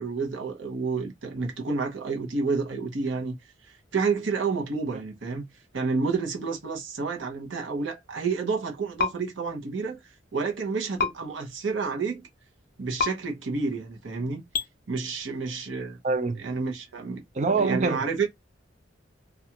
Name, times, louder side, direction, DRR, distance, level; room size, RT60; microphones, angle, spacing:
voice 1, 0.0-3.4 3.6-5.4 5.7-12.2 12.8-14.4 14.9-16.0 16.4-17.2 17.6-18.3, right 4 dB, 85° right, 0.8 m, -30 dB
sound 1, 9.0-9.1 11.0-11.1 13.0-13.1 14.5-14.7, left 6 dB, 50° left, 0.5 m, -25 dB
voice 2, 16.0-16.4 17.3-18.1, right 4 dB, 40° right, 0.4 m, -25 dB
2.4 x 2.3 x 2.8 m
head